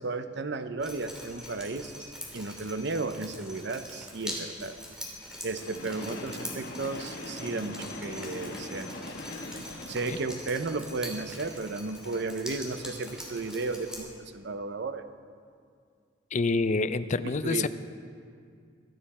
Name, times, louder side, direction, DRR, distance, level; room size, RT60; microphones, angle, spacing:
voice 1, 0.0-4.8 5.4-8.9 9.9-15.0 17.4-17.7, right 3 dB, 65° right, 9 dB, 0.8 m, -34 dB
Drip, 0.8-14.0, equal, 5° right, 2.8 m, -43 dB
Train, 5.5-10.5, left 2 dB, 65° left, 1.2 m, -41 dB
voice 2, 16.3-17.7, left 3 dB, 40° left, 12 dB, 0.5 m, -27 dB
25.0 x 9.4 x 4.3 m, 2.2 s
head